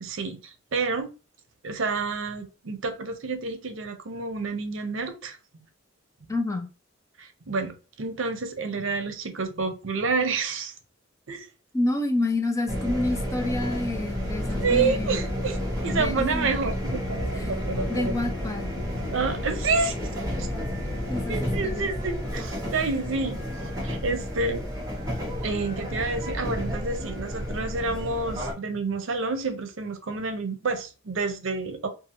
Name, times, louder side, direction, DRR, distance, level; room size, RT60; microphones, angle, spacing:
voice 1, 0.0-1.1 1.6-5.6 6.2-6.3 7.2-10.7 11.3-11.5 14.6-15.6 15.8-18.1 19.1-20.0 20.4-20.5 21.3-24.7 25.4-31.9, right 4 dB, 75° right, 0.6 m, -29 dB
voice 2, 6.3-6.7 11.7-15.2 15.9-16.5 17.3-17.6 17.9-18.7 21.1-21.9, left 2 dB, 15° left, 0.4 m, -28 dB
sound 1, 12.7-28.5, equal, 20° right, 1.0 m, -31 dB
2.7 x 2.4 x 2.7 m
head